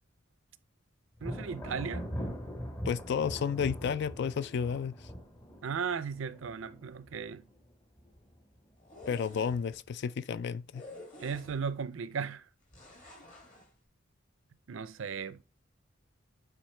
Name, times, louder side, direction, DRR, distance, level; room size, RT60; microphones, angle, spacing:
Thunder, 1.2-7.7 8.0-8.6 9.0-9.9, equal, 15° left, 0.8 m, -41 dB
voice 1, 1.2-2.1 5.6-7.4 11.2-12.4 14.7-15.4, right 6 dB, 70° right, 0.5 m, -36 dB
voice 2, 2.8-5.0 9.1-10.8, left 6 dB, 55° left, 0.3 m, -32 dB
sound 1, 8.8-9.7 10.7-11.8 12.7-13.7, left 1 dB, 40° left, 2.3 m, -50 dB
9.1 x 3.9 x 3.3 m
head